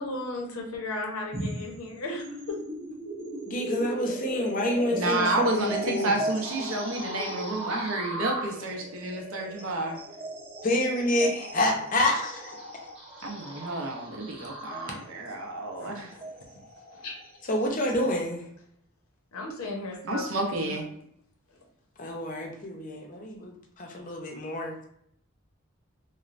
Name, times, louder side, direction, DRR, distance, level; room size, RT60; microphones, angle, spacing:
voice 1, 0.0-2.6 14.9-15.0 15.8-16.2 16.9-17.3 19.3-20.8, left 2 dB, 85° left, 1 dB, 0.7 m, -36 dB
sound 1, 1.3-18.2, right 1 dB, 30° right, 0.6 m, -38 dB
voice 2, 3.5-6.2 10.6-12.6 17.5-18.4 22.0-24.8, left 1 dB, 40° left, 1 dB, 0.5 m, -28 dB
voice 3, 4.9-10.0 13.2-16.1 20.0-20.9, right 2 dB, 70° right, 2 dB, 0.6 m, -30 dB
3.0 x 2.1 x 2.4 m, 0.70 s
head